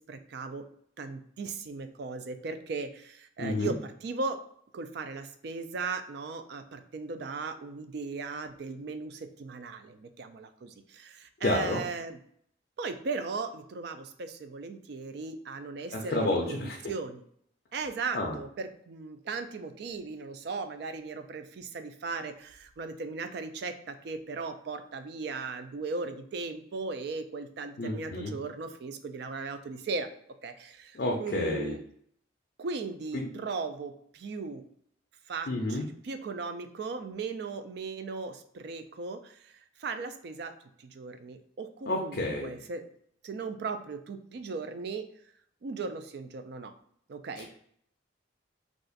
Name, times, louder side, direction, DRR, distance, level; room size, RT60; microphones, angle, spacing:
voice 1, 0.3-0.6 1.0-2.9 3.4-3.8 4.0-4.4 4.7-9.1 9.4-9.8 10.2-10.5 11.4-12.2 12.8-14.0 14.5-16.6 16.9-17.2 17.7-22.3 22.8-23.7 24.1-30.1 30.4-30.5 31.2-31.8 32.6-33.9 34.2-34.6 35.3-35.5 36.1-38.3 38.6-39.2 39.8-40.5 41.0-42.8 43.3-45.0 45.6-46.7 47.1-47.5, right 4 dB, 55° right, 8 dB, 0.3 m, -36 dB
voice 2, 3.4-3.7 11.4-11.8 15.9-16.8 18.1-18.4 27.8-28.3 30.9-31.8 33.1-33.3 35.5-35.8 41.9-42.5 47.4-47.5, left 2 dB, 50° left, 1 dB, 0.4 m, -30 dB
2.4 x 2.4 x 3.7 m, 0.66 s
head